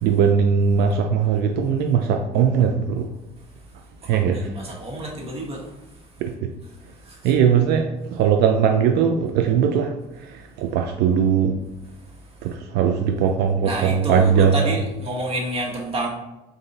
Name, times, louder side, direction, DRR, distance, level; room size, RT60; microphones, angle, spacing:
voice 1, 0.0-3.1 4.1-4.5 6.2-6.5 7.2-9.9 10.2-11.6 12.4-14.8, right 7 dB, 80° right, 4 dB, 0.4 m, -20 dB
voice 2, 4.1-5.7 7.0-7.3 13.6-16.1, right 1 dB, 35° right, -2 dB, 1.2 m, -29 dB
3.9 x 2.6 x 3.9 m, 0.98 s
cardioid pair, 110°, 17 cm